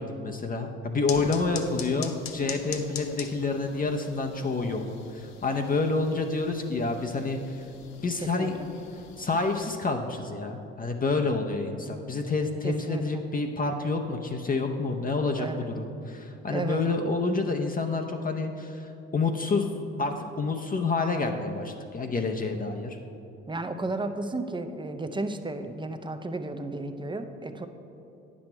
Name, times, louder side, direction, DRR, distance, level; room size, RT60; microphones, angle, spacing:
voice 1, 0.0-4.8 5.1-7.6 8.0-8.6 9.2-19.7 20.0-23.0, left 3 dB, 25° left, 3 dB, 0.7 m, -28 dB
sound 1, 1.1-9.7, left 7 dB, 60° left, 0.7 m, -43 dB
voice 2, 8.2-8.7 12.6-13.2 15.4-15.7 16.5-16.8 23.5-27.7, right 2 dB, 15° right, 8 dB, 0.6 m, -33 dB
9.3 x 6.2 x 4.5 m, 2.8 s
hypercardioid pair, 55°, 31 cm